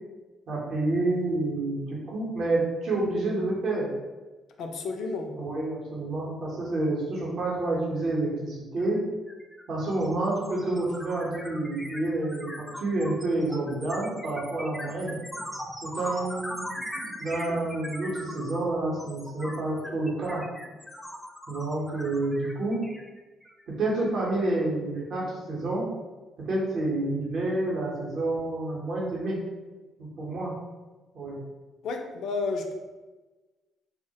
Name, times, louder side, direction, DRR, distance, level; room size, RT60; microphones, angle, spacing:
voice 1, 0.5-3.9 5.4-9.0 9.7-15.1 15.8-16.7 17.2-20.5 21.5-22.8 23.7-25.9 26.5-29.4 30.0-30.5 31.1-31.4, right 2 dB, 65° right, -5 dB, 0.7 m, -29 dB
voice 2, 4.6-5.3 31.8-32.7, left 3 dB, 70° left, 4 dB, 0.3 m, -31 dB
sound 1, 8.8-9.0 9.3-23.6, equal, 5° left, 0.4 m, -40 dB
2.2 x 2.0 x 2.7 m, 1.2 s
hypercardioid pair, 55°, 0 cm